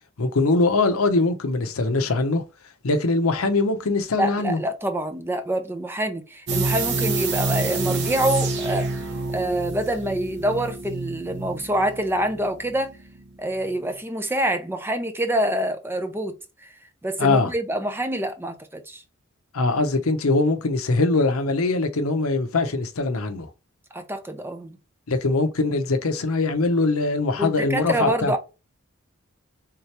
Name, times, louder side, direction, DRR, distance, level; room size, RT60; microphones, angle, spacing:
voice 1, 0.2-2.4 2.8-4.6 17.2-17.5 19.5-23.5 25.1-28.3, left 3 dB, 80° left, 0.7 m, -22 dB
voice 2, 4.2-12.9 13.4-16.7 17.0-19.0 23.9-24.8 27.4-28.4, right 1 dB, 10° right, 0.5 m, -26 dB
sound 1, 6.5-13.3 13.6-13.7, right 3 dB, 55° right, 0.8 m, -27 dB
3.7 x 2.9 x 3.2 m
head